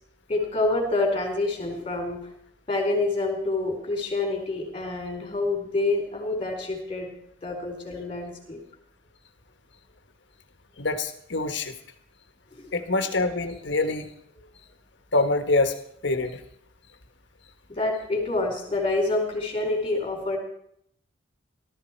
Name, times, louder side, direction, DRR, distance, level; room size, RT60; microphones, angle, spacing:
voice 1, 0.3-2.2 2.7-7.1 7.4-8.6 12.5-12.7 17.7-20.4, left 2 dB, 25° left, 1 dB, 4.2 m, -27 dB
voice 2, 10.8-11.7 12.7-14.1 15.1-15.7 16.0-16.4, left 2 dB, 55° left, 8 dB, 1.4 m, -25 dB
18.0 x 13.0 x 4.6 m, 0.71 s
head